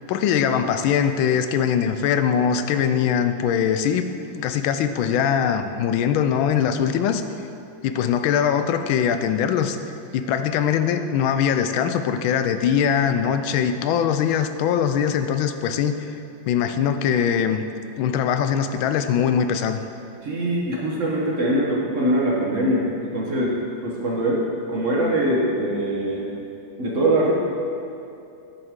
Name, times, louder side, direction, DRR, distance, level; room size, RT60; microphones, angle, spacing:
voice 1, 0.1-7.4 7.8-9.8 10.1-16.1 16.5-17.6 18.0-19.8, left 8 dB, 90° left, 9 dB, 1.4 m, -22 dB
voice 2, 20.2-26.3 26.8-27.3, right 1 dB, 45° right, -3 dB, 1.3 m, -23 dB
9.9 x 7.9 x 3.7 m, 2.7 s
omnidirectional pair, 2.1 m